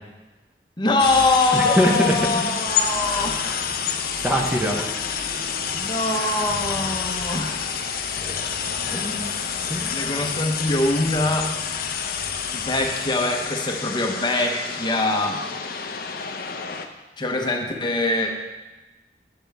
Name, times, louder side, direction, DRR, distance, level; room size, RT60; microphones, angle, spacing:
voice 1, 0.8-3.4 5.7-7.6 8.7-9.0 9.9-11.5 12.5-15.4 17.2-18.3, left 2 dB, 25° left, 2 dB, 0.8 m, -23 dB
sound 1, 1.0-16.9, left 6 dB, 55° left, 0.6 m, -28 dB
voice 2, 1.5-2.5 3.8-4.9 8.2-8.3 8.9-9.3 9.7-10.1, equal, 10° right, 0 dB, 0.7 m, -24 dB
8.5 x 7.7 x 3.4 m, 1.1 s
head